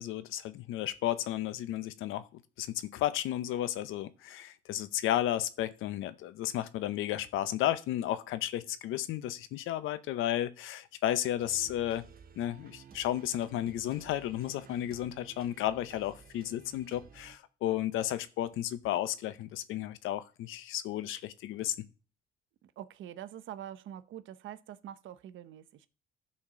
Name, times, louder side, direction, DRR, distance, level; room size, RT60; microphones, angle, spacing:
voice 1, 0.0-12.1 12.4-21.8, left 12 dB, 90° left, 0.7 m, -33 dB
sound 1, 11.4-17.4, right 7 dB, 50° right, 1.0 m, -54 dB
voice 2, 22.6-25.9, right 11 dB, 75° right, 0.8 m, -45 dB
12.0 x 4.3 x 6.1 m
cardioid pair, 90°, 20 cm